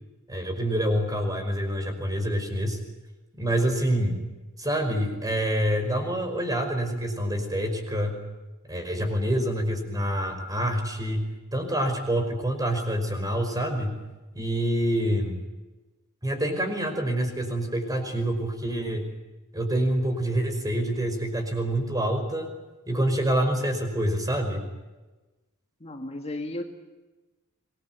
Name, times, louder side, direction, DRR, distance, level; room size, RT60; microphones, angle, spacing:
voice 1, 0.3-2.8 3.4-4.2 4.6-8.2 8.7-11.2 11.5-14.0 14.3-15.4 16.2-19.1 19.5-22.5 22.9-24.7, right 1 dB, 15° right, 6 dB, 5.3 m, -26 dB
voice 2, 25.8-26.6, left 1 dB, 30° left, 4 dB, 1.9 m, -34 dB
26.5 x 20.5 x 9.4 m, 1.2 s
head